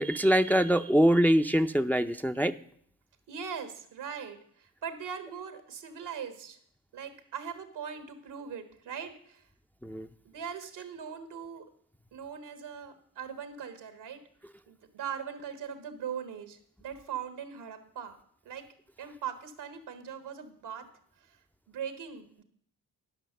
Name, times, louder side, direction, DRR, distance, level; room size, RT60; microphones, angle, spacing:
voice 1, 0.0-2.6 9.8-10.1, equal, 5° left, 8 dB, 0.5 m, -24 dB
voice 2, 3.3-6.6 6.9-9.5 10.2-11.6 12.1-14.2 14.7-18.2 18.4-18.7 19.0-20.9 21.2-21.4 21.7-22.4, right 7 dB, 80° right, 8 dB, 1.5 m, -40 dB
11.5 x 5.8 x 6.7 m, 0.63 s
supercardioid pair, 45°, 40 cm